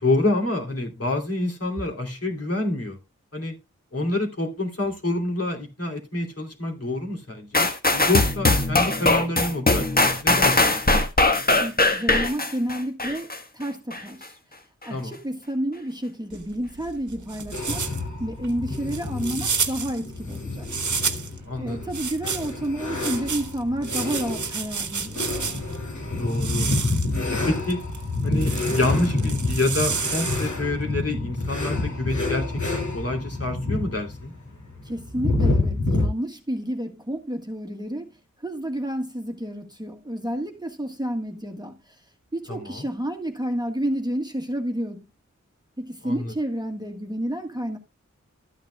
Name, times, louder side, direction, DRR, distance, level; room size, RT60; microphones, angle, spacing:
voice 1, 0.0-3.0 3.3-3.5 3.9-10.8 14.9-15.1 21.5-21.8 26.2-26.7 27.3-27.8 28.2-34.3 42.5-42.8 46.0-46.3, left 2 dB, 55° left, 3.1 m, -27 dB
sound 1, 7.5-13.4 13.9-14.0, left 2 dB, 30° left, 1.3 m, -20 dB
voice 2, 11.6-14.4 14.8-17.8 18.2-21.0 21.6-25.2 34.8-38.1 38.4-42.0 42.3-45.0 45.8-47.8, right 1 dB, 15° right, 1.5 m, -30 dB
sound 2, 16.3-21.4 21.9-25.8 26.3-30.7, right 5 dB, 90° right, 1.0 m, -31 dB
sound 3, 17.5-36.1, left 2 dB, 85° left, 5.6 m, -28 dB
13.0 x 9.2 x 2.3 m
wide cardioid pair, 70°, 29 cm